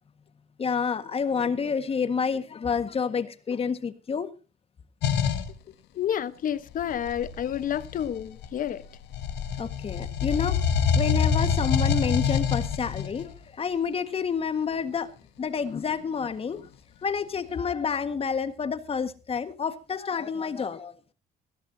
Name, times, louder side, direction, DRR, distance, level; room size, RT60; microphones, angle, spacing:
voice 1, 0.6-4.3 9.6-10.6 11.0-15.1 15.4-16.7 17.0-20.9, left 6 dB, 35° left, 1.7 m, -29 dB
sound 1, 5.0-5.5 6.8-8.7 9.1-13.3, left 7 dB, 80° left, 1.8 m, -26 dB
voice 2, 6.0-8.8, left 9 dB, 55° left, 1.2 m, -29 dB
21.0 x 15.0 x 2.8 m
cardioid pair, 110°, 17 cm